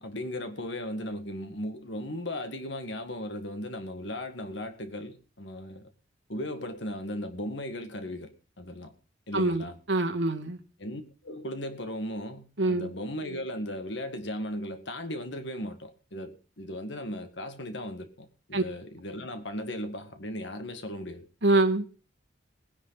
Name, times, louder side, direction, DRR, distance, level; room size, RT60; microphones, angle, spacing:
voice 1, 0.0-5.8 6.3-8.3 8.6-8.9 9.3-9.8 10.8-21.3, left 1 dB, 60° left, 7 dB, 1.9 m, -37 dB
voice 2, 9.3-10.6 12.6-12.9 18.5-18.6 21.4-21.9, right 2 dB, 65° right, 4 dB, 2.0 m, -25 dB
20.0 x 10.0 x 4.0 m, 0.36 s
head